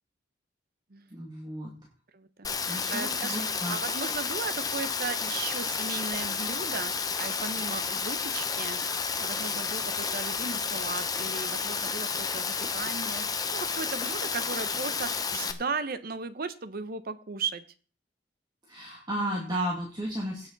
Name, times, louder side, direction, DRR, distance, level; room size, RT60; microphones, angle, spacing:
voice 1, 1.1-1.7 2.7-3.8 18.7-20.5, right 1 dB, 25° right, -2 dB, 2.2 m, -33 dB
voice 2, 2.1-6.9 7.2-8.8 9.2-17.6, right 4 dB, 55° right, 13 dB, 0.8 m, -36 dB
Rain, 2.4-15.5, left 5 dB, 20° left, 0.9 m, -31 dB
17.0 x 7.0 x 4.0 m, 0.42 s
head